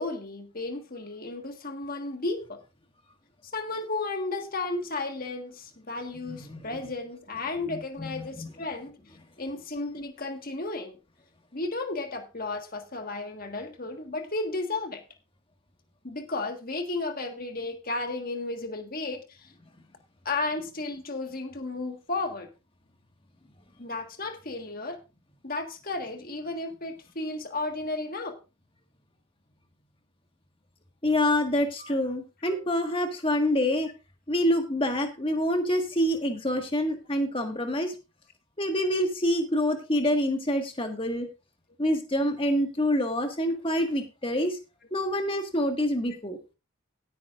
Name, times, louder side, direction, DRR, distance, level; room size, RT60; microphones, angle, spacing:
voice 1, 0.0-2.6 3.4-9.0 9.4-11.0 11.5-15.0 16.0-19.5 20.2-22.5 23.8-25.0 25.4-28.4 31.8-31.9 32.4-32.6, left 2 dB, 40° left, 5 dB, 1.6 m, -33 dB
voice 2, 6.2-6.6 7.7-8.5 31.0-33.9 34.3-37.9 38.6-41.3 41.8-44.6 44.9-46.4, left 1 dB, 25° left, 5 dB, 1.7 m, -26 dB
16.5 x 9.5 x 2.5 m, 0.29 s
head